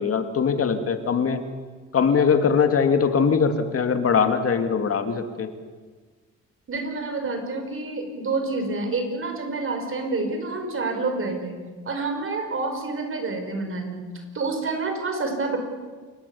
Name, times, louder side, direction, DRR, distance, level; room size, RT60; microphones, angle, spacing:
voice 1, 0.0-1.4 1.9-5.5, left 6 dB, 50° left, 7 dB, 2.5 m, -21 dB
voice 2, 6.7-11.6 11.9-14.0 14.3-15.6, right 3 dB, 45° right, 5 dB, 5.2 m, -28 dB
29.0 x 18.0 x 7.2 m, 1.4 s
cardioid pair, 90°, 30 cm